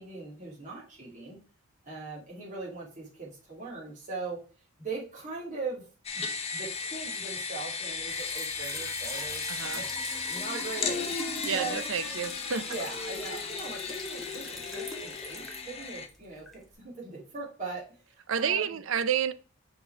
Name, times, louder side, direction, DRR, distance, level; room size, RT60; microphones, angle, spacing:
voice 1, 0.0-1.4 1.8-4.4 4.8-5.9 6.1-6.2 6.5-9.9 10.3-11.2 11.5-11.8 12.6-18.8, right 3 dB, 35° right, 2.6 m, -40 dB
sound 1, 6.0-16.1, left 4 dB, 30° left, 0.7 m, -35 dB
Trickle dribble / Fill (with liquid), 7.9-16.7, left 1 dB, ahead, 1.0 m, -43 dB
voice 2, 9.5-9.8 11.4-12.7 18.3-19.3, right 7 dB, 65° right, 0.5 m, -30 dB
5.7 x 4.3 x 4.5 m
head